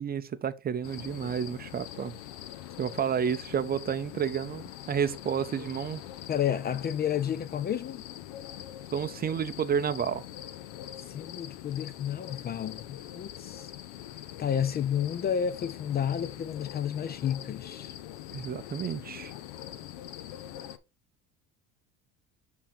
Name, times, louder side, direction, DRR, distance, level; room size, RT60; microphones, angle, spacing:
voice 1, 0.0-2.1 2.8-6.0 8.9-10.2 18.3-19.3, right 8 dB, 30° right, 0.5 m, -30 dB
sound 1, 0.8-20.8, left 12 dB, 90° left, 0.7 m, -43 dB
voice 2, 6.3-8.0 11.1-13.7 14.4-17.9, left 9 dB, 30° left, 0.4 m, -31 dB
7.3 x 3.9 x 4.1 m
supercardioid pair, 105°, 33 cm